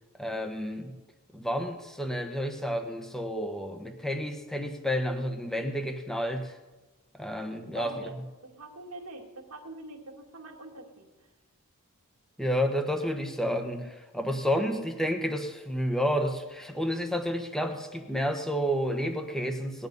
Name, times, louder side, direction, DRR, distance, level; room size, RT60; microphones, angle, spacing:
voice 1, 0.2-0.9 1.3-6.6 7.1-8.1 12.4-19.9, equal, ahead, 5 dB, 1.2 m, -30 dB
voice 2, 7.7-8.2 8.4-11.1, right 2 dB, 85° right, 3 dB, 2.1 m, -43 dB
19.5 x 10.0 x 5.4 m, 1.2 s
head